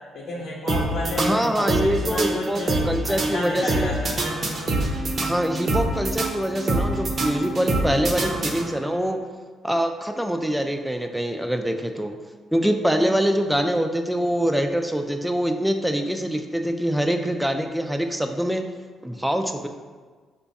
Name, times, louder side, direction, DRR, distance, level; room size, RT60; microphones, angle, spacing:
voice 1, 0.1-4.2, left 1 dB, 70° left, -5 dB, 0.8 m, -31 dB
sound 1, 0.7-9.0, right 2 dB, 45° right, 0.6 m, -26 dB
voice 2, 1.2-3.9 5.2-9.2 9.6-12.2 12.5-18.6 19.0-19.7, equal, 5° right, 5 dB, 0.3 m, -24 dB
5.0 x 2.3 x 4.0 m, 1.5 s
cardioid pair, 90°, 0 cm